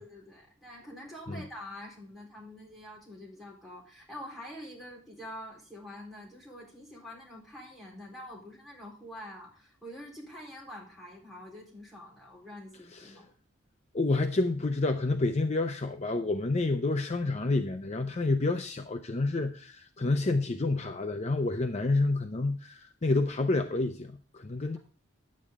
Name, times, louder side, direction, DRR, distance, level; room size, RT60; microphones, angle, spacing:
voice 1, 0.0-13.3, left 1 dB, ahead, -4 dB, 3.8 m, -46 dB
voice 2, 13.9-24.8, left 2 dB, 35° left, 7 dB, 0.5 m, -29 dB
10.0 x 8.5 x 3.6 m, 0.42 s
head